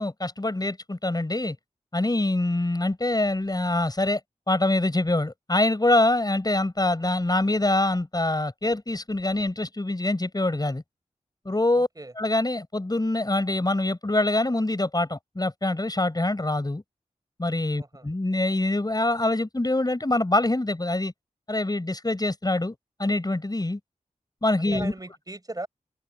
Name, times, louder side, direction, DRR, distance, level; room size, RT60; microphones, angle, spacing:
voice 1, 0.0-1.6 1.9-4.2 4.5-10.8 11.5-11.9 12.2-16.8 17.4-21.1 21.5-22.7 23.0-23.8 24.4-24.9, left 2 dB, 30° left, 5.6 m, -25 dB
voice 2, 11.7-12.1 17.8-18.0 24.7-25.7, right 2 dB, 30° right, 5.2 m, -37 dB
open air
cardioid pair, 45°, 14 cm